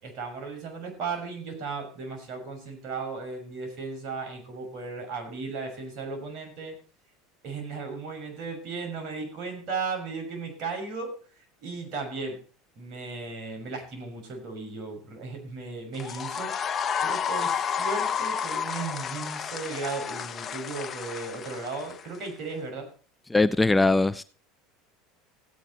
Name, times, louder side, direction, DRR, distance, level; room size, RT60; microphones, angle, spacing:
voice 1, 0.0-6.8 7.4-12.4 12.8-22.9, right 4 dB, 55° right, 3 dB, 6.2 m, -36 dB
sound 1, 15.9-22.3, left 7 dB, 35° left, 1.0 m, -31 dB
voice 2, 23.3-24.2, left 2 dB, 10° left, 13 dB, 0.5 m, -21 dB
15.5 x 8.8 x 4.3 m, 0.38 s
hypercardioid pair, 95°, 0 cm